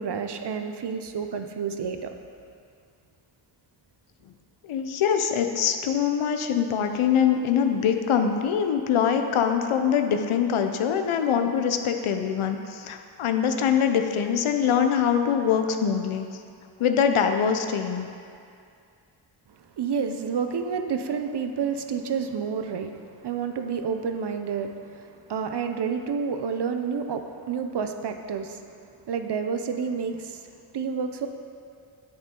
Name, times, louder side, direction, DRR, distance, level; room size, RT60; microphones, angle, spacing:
voice 1, 0.0-2.1 19.8-28.6 29.1-31.3, right 6 dB, 55° right, 7 dB, 0.7 m, -29 dB
voice 2, 4.6-16.2 16.8-18.1, left 7 dB, 80° left, 6 dB, 0.8 m, -23 dB
9.4 x 8.1 x 3.8 m, 2.4 s
cardioid pair, 85°, 49 cm